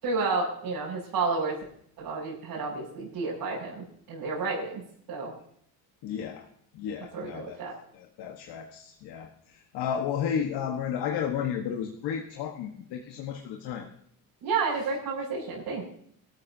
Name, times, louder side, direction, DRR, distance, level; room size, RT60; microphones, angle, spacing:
voice 1, 0.0-1.6 2.0-4.8 5.1-5.3 7.1-7.8 14.4-15.8, right 4 dB, 75° right, -8 dB, 6.3 m, -31 dB
voice 2, 6.0-6.5 6.7-7.6 7.9-13.9, left 8 dB, 80° left, 3 dB, 1.4 m, -33 dB
23.0 x 13.5 x 2.8 m, 0.65 s
cardioid pair, 135°, 38 cm